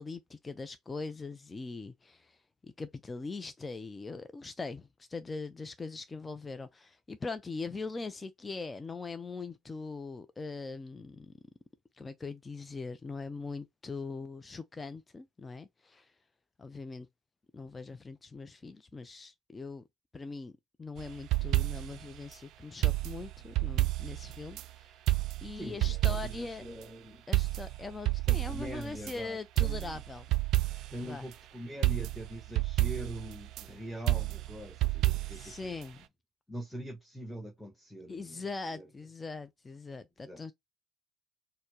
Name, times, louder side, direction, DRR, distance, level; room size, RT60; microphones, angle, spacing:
voice 1, 0.0-11.3 12.0-16.1 16.6-17.1 17.5-19.8 20.1-20.5 20.8-25.0 25.4-26.7 27.3-30.3 31.0-31.3 35.3-36.1 38.1-40.5, left 4 dB, 20° left, 0.4 m, -41 dB
sound 1, 21.0-22.0 22.8-24.7 25.1-26.5 26.8-26.9 27.3-29.2 29.6-31.0 31.3-31.4 31.8-33.6 34.1-35.5 35.8-35.9, right 16 dB, 55° right, 0.4 m, -30 dB
voice 2, 25.5-27.2 28.3-30.0 30.9-35.8 36.5-38.4 38.7-38.9 40.3-40.4, equal, ahead, 1.0 m, -43 dB
4.3 x 2.1 x 2.9 m
hypercardioid pair, 65°, 0 cm